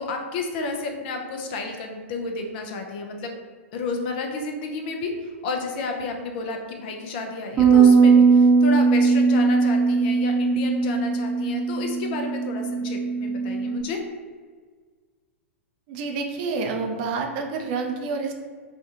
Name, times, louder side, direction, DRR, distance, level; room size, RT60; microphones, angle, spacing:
voice 1, 0.0-3.3 3.7-5.1 5.4-14.0, left 3 dB, 45° left, 3 dB, 0.6 m, -31 dB
Bass guitar, 7.6-13.8, right 5 dB, 20° right, 0.8 m, -19 dB
voice 2, 15.9-18.3, right 4 dB, 45° right, 3 dB, 0.5 m, -28 dB
4.4 x 2.3 x 2.7 m, 1.5 s
figure-of-eight pair, 100°, 7 cm